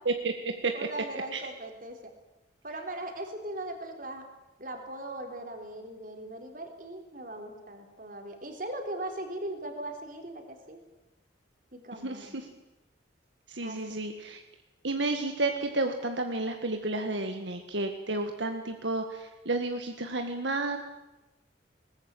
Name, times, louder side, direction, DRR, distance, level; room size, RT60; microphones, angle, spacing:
voice 1, 0.0-0.7 1.3-1.4 12.0-12.5 13.5-14.4 14.8-20.8, right 2 dB, 75° right, 5 dB, 1.8 m, -31 dB
voice 2, 0.7-2.1 2.6-4.3 4.6-10.8 11.7-12.4 13.6-14.2, right 1 dB, 45° right, 4 dB, 3.7 m, -39 dB
21.5 x 19.5 x 9.0 m, 1.0 s
head